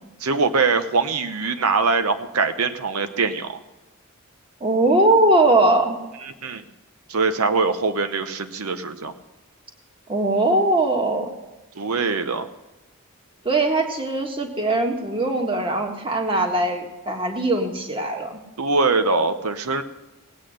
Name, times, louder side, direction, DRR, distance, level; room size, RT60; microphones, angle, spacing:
voice 1, 0.2-3.6 6.2-6.6 7.1-9.1 11.8-12.5 18.6-19.8, right 4 dB, 85° right, 9 dB, 0.8 m, -22 dB
voice 2, 4.6-6.0 10.1-11.3 13.4-18.3, right 2 dB, 25° right, 3 dB, 1.6 m, -20 dB
18.5 x 8.7 x 6.4 m, 1.1 s
head